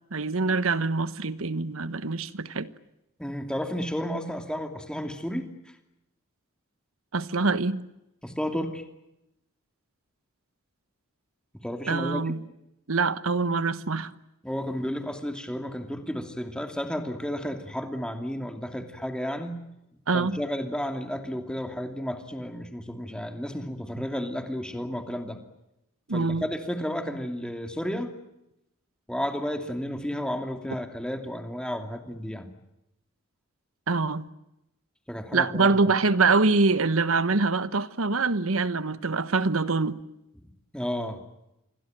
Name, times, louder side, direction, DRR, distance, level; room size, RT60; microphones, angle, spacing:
voice 1, 0.1-2.7 7.1-7.8 11.9-12.4 12.9-14.1 20.1-20.4 26.1-26.4 33.9-34.2 35.3-40.0, right 3 dB, 75° right, 1.2 m, -24 dB
voice 2, 3.2-5.5 8.2-8.8 11.6-12.3 14.4-19.6 20.1-25.4 26.1-28.1 29.1-32.5 35.1-35.8 40.7-41.2, equal, 5° left, 2.7 m, -32 dB
27.5 x 22.5 x 9.0 m
head